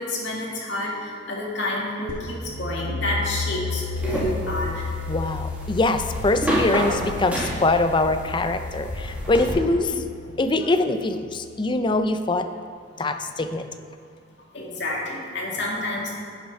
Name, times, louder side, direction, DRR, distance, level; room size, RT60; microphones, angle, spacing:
voice 1, 0.0-4.8 14.5-16.2, left 1 dB, 65° left, -3 dB, 2.3 m, -29 dB
sound 1, 2.1-11.7, left 5 dB, 85° left, 0.9 m, -34 dB
sound 2, 4.0-9.5, equal, 10° right, 1.8 m, -29 dB
voice 2, 5.1-10.1 10.4-12.5 13.0-13.6, left 2 dB, 25° left, 8 dB, 0.5 m, -23 dB
10.0 x 6.4 x 5.4 m, 2.4 s
head